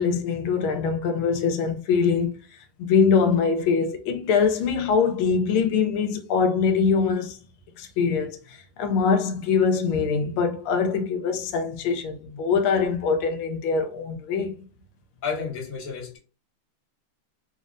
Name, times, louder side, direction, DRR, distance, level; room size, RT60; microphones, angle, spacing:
voice 1, 0.0-2.3 2.8-7.4 7.8-14.6, left 5 dB, 80° left, 1.4 m, -23 dB
voice 2, 15.2-16.2, left 5 dB, 40° left, 0.7 m, -31 dB
3.7 x 2.0 x 2.4 m
omnidirectional pair, 2.3 m